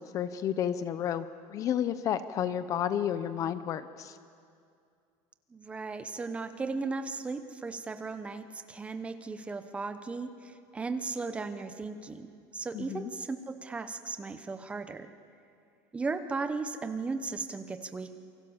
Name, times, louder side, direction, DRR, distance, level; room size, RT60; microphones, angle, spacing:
voice 1, 0.0-4.2 12.7-13.1, left 9 dB, 30° left, 13 dB, 0.7 m, -31 dB
voice 2, 5.5-15.1 15.9-18.2, right 4 dB, 10° right, 9 dB, 0.9 m, -36 dB
28.0 x 24.0 x 7.2 m, 2.3 s
cardioid pair, 180°, 11 cm